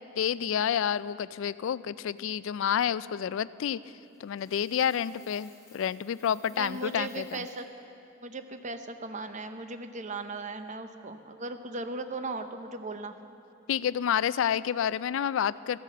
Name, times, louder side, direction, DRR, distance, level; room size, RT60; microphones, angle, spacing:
voice 1, 0.2-3.8 4.2-7.4 13.7-15.8, left 8 dB, 65° left, 17 dB, 0.3 m, -29 dB
Coin (dropping), 4.1-7.6, left 4 dB, 15° left, 2.4 m, -59 dB
voice 2, 6.5-7.7 8.2-13.2, right 3 dB, 35° right, 8 dB, 0.7 m, -37 dB
14.0 x 10.5 x 7.4 m, 2.9 s
head